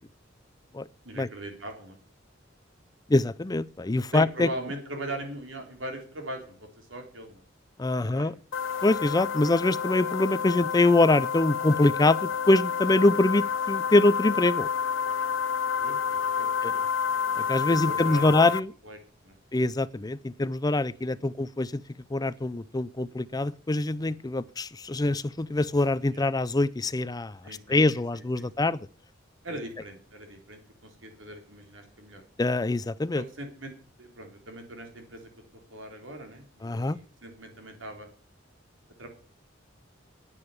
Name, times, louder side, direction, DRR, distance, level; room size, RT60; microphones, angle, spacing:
voice 1, 1.0-2.0 4.1-7.4 8.0-8.4 15.8-16.9 17.7-18.5 18.8-19.0 19.2-19.4 26.1-26.2 27.4-28.7 29.4-32.2 33.1-35.3 35.7-38.1 39.0-39.1, right 1 dB, 80° right, 3.7 m, -41 dB
voice 2, 3.1-4.5 7.8-8.3 8.8-14.7 16.6-16.7 17.5-18.7 19.5-21.8 22.1-27.4 27.7-28.8 32.4-33.2 36.6-37.0, left 2 dB, 20° left, 0.5 m, -24 dB
sound 1, 8.5-18.6, left 7 dB, 85° left, 0.5 m, -29 dB
9.8 x 9.0 x 8.6 m
head